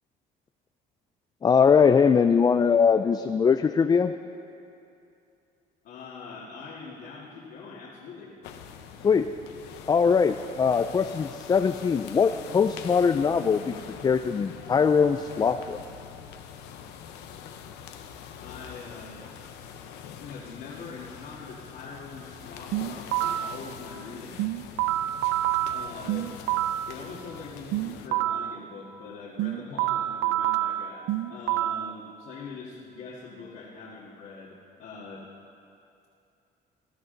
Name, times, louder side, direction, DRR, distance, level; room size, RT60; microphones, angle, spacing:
voice 1, 1.4-4.1 9.0-9.3 9.9-15.8, left 6 dB, 25° left, 9 dB, 0.3 m, -22 dB
voice 2, 5.8-8.3 18.4-19.2 20.1-24.6 25.7-26.3 26.9-35.2, left 4 dB, 70° left, -6 dB, 2.0 m, -43 dB
sound 1, 8.4-28.1, left 8 dB, 90° left, 0.9 m, -44 dB
sound 2, 22.7-23.6 24.4-26.9 27.7-28.6 29.4-31.9, right 14 dB, 80° right, 0.4 m, -27 dB
17.5 x 12.5 x 3.9 m, 2.6 s
cardioid pair, 110°, 17 cm